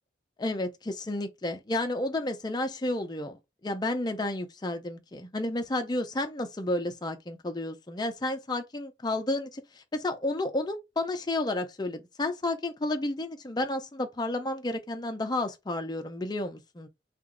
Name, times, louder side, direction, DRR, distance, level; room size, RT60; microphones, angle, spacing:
voice 1, 0.4-3.4 3.6-16.9, left 2 dB, 25° left, 0.5 m, -31 dB
2.9 x 2.5 x 3.7 m
head